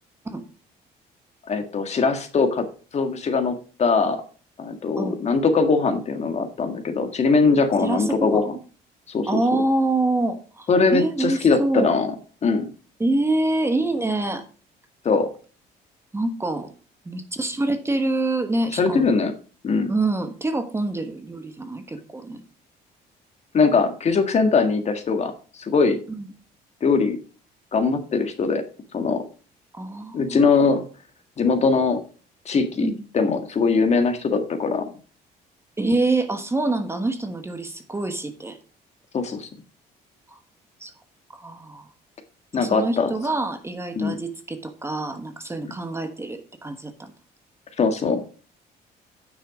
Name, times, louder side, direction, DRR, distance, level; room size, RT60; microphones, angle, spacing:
voice 1, 1.5-2.7 2.9-4.2 4.6-8.5 9.1-9.6 10.7-12.1 12.4-12.6 15.1-15.3 18.8-19.3 19.6-19.9 23.5-25.3 25.6-26.0 26.8-27.2 27.7-28.6 28.9-29.2 30.1-30.8 31.4-32.0 32.5-34.9 39.1-39.5 42.5-43.1 44.0-44.2 47.8-48.2, left 4 dB, 40° left, 7 dB, 1.8 m, -21 dB
voice 2, 7.8-8.4 9.3-11.9 13.0-14.4 16.1-16.7 17.0-19.1 19.9-22.4 26.2-26.3 29.7-30.5 32.8-33.0 35.8-38.6 40.3-40.4 40.8-40.9 41.3-41.9 42.5-47.1, right 2 dB, 15° right, 8 dB, 1.2 m, -26 dB
9.5 x 6.3 x 5.0 m, 0.38 s
cardioid pair, 110°, 17 cm